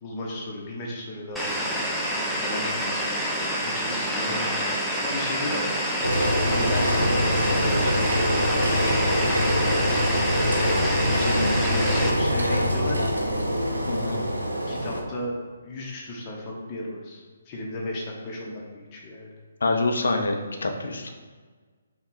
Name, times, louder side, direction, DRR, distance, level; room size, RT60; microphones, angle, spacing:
voice 1, 0.0-5.8 6.4-8.2 9.4-13.2 14.7-15.4 15.6-19.3, left 1 dB, 25° left, -2 dB, 0.8 m, -35 dB
sound 1, 1.4-12.1, equal, ahead, 0.5 m, -28 dB
Engine, 6.0-15.0, equal, 80° right, 0.7 m, -24 dB
voice 2, 13.9-14.2 19.6-21.1, left 2 dB, 60° left, 4 dB, 0.6 m, -26 dB
5.5 x 2.3 x 3.9 m, 1.5 s
figure-of-eight pair, 135°, 0 cm